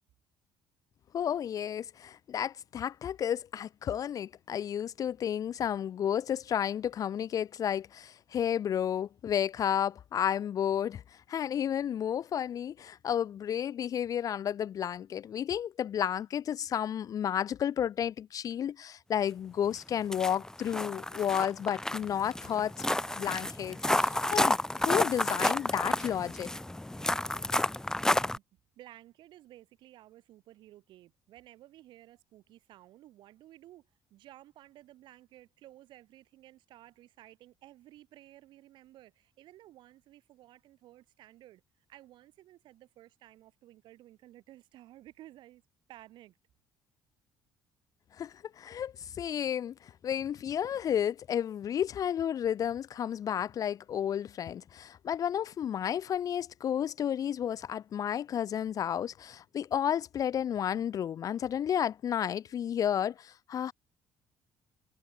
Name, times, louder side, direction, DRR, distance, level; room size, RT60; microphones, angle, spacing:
voice 1, 1.1-11.0 11.3-22.7 23.2-24.6 24.9-26.5 48.2-63.7, left 9 dB, 45° left, 0.4 m, -32 dB
sound 1, 19.7-19.8 20.1-28.4, left 1 dB, 5° left, 0.9 m, -30 dB
voice 2, 28.0-28.4 28.8-45.6 45.9-46.4, right 14 dB, 70° right, 4.0 m, -55 dB
supercardioid pair, 85°, 8 cm